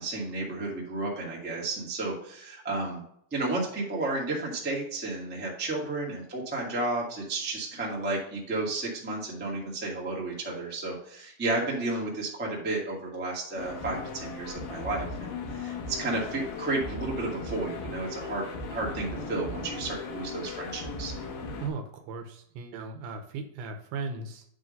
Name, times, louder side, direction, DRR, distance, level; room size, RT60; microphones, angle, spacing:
voice 1, 0.0-3.0 3.3-21.1, right 2 dB, 10° right, -4 dB, 0.7 m, -32 dB
sound 1, 13.6-21.7, left 3 dB, 70° left, 3.0 m, -37 dB
voice 2, 21.6-24.4, right 4 dB, 75° right, 6 dB, 2.4 m, -37 dB
8.7 x 3.7 x 5.2 m, 0.70 s
omnidirectional pair, 4.5 m